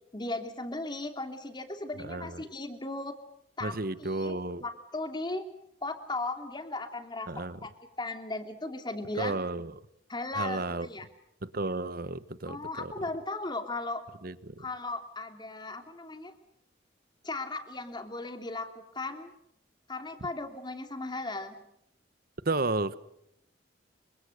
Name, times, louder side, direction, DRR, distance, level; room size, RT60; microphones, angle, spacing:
voice 1, 0.1-3.1 3.6-5.5 5.8-7.7 8.0-9.4 10.1-11.1 12.5-14.1 14.6-16.3 17.2-19.3 19.9-21.6, left 2 dB, 25° left, 3.0 m, -37 dB
voice 2, 2.1-2.4 3.6-4.6 7.3-7.6 9.2-9.7 10.3-10.9 11.4-12.9 14.2-14.6 22.4-22.9, right 2 dB, 55° right, 1.2 m, -32 dB
29.5 x 25.0 x 6.6 m
head